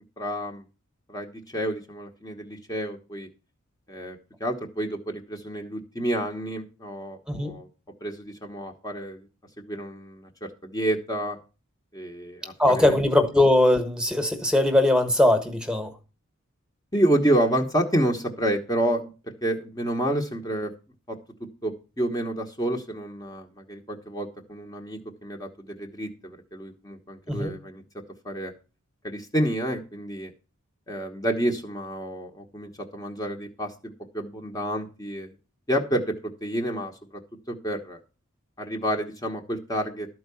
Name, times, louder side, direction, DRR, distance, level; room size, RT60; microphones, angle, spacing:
voice 1, 0.2-0.6 1.1-3.3 3.9-7.7 8.0-9.3 9.7-10.3 10.6-11.4 11.9-13.0 16.9-19.1 19.4-20.7 21.1-21.2 21.6-27.8 28.2-28.5 29.0-30.3 30.9-35.3 35.7-36.1 36.4-36.9 37.5-38.0 38.6-40.1, right 1 dB, 15° left, 1.1 m, -29 dB
voice 2, 7.3-7.6 12.6-15.9 27.3-27.5, left 1 dB, 5° right, 1.3 m, -20 dB
13.0 x 4.7 x 6.9 m
head